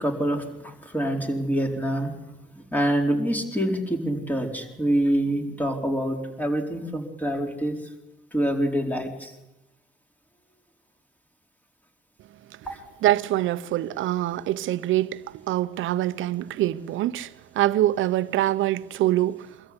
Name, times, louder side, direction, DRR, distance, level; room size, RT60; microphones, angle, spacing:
voice 1, 0.0-2.1 2.7-7.8 8.3-9.3 12.7-12.8, right 1 dB, 10° left, 4.6 m, -26 dB
voice 2, 13.0-19.5, right 14 dB, 85° right, 0.9 m, -24 dB
24.5 x 14.0 x 9.7 m
cardioid pair, 90°, 20 cm